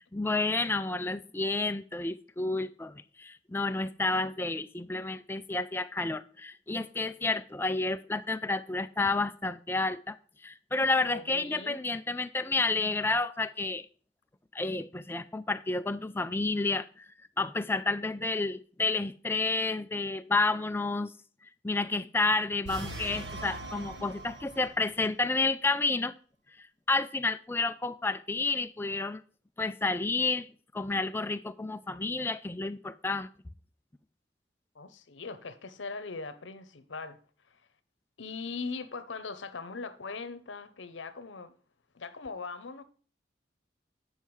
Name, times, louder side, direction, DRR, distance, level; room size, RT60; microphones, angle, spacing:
voice 1, 0.0-10.2 10.4-13.9 14.5-17.1 17.4-21.1 21.6-26.1 26.6-29.2 29.6-30.5 30.7-33.3, left 3 dB, 10° left, 0.3 m, -30 dB
voice 2, 11.0-11.8 24.3-24.4 34.7-37.2 37.5-37.6 38.2-41.5 41.9-42.8, left 4 dB, 85° left, 0.8 m, -40 dB
sound 1, 22.6-24.9, right 1 dB, 75° right, 1.1 m, -41 dB
9.0 x 5.5 x 4.7 m
head